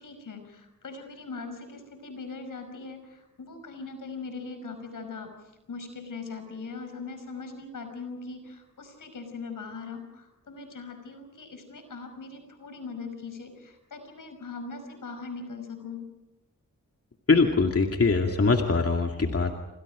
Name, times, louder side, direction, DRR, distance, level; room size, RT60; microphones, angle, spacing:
voice 1, 0.0-5.3 5.7-16.1, left 4 dB, 80° left, 7 dB, 5.6 m, -40 dB
voice 2, 17.3-19.5, left 4 dB, 50° left, 3 dB, 2.5 m, -22 dB
28.0 x 26.5 x 5.1 m, 0.99 s
cardioid pair, 60°, 31 cm